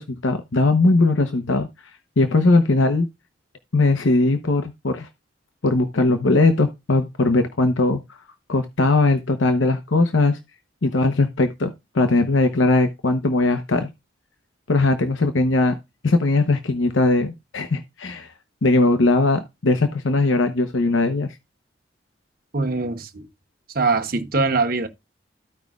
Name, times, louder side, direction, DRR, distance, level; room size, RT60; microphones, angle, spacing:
voice 1, 0.0-1.7 2.2-3.1 3.7-5.1 5.6-8.2 8.5-10.4 10.8-13.9 14.7-15.8 16.0-18.3 18.6-21.3, left 2 dB, 90° left, 0.8 m, -19 dB
voice 2, 22.5-23.3 23.7-24.9, right 3 dB, 50° right, 1.0 m, -22 dB
14.5 x 5.2 x 2.3 m
head